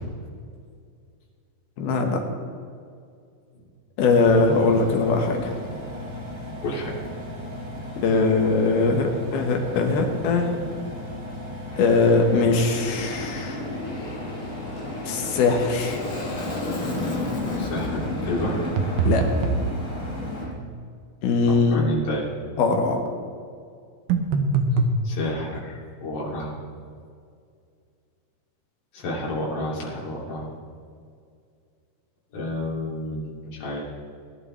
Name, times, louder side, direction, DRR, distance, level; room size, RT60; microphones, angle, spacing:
voice 1, 1.8-2.2 4.0-5.5 8.0-10.6 11.8-13.6 15.0-16.0 19.0-19.3 21.2-21.8 22.6-23.0, left 4 dB, 85° left, 2 dB, 3.4 m, -21 dB
Engine, 4.0-20.5, left 1 dB, 25° right, 0.5 m, -36 dB
voice 2, 6.6-6.9 17.6-18.7 21.7-22.3 25.0-26.5 28.9-30.5 32.3-33.8, left 1 dB, 60° left, -5 dB, 4.2 m, -30 dB
Aircraft, 11.7-20.5, left 2 dB, 40° left, 1.1 m, -32 dB
sound 1, 18.8-19.7 24.1-25.0, right 4 dB, 80° right, 2.8 m, -22 dB
21.0 x 11.5 x 3.3 m, 2.3 s
omnidirectional pair, 4.3 m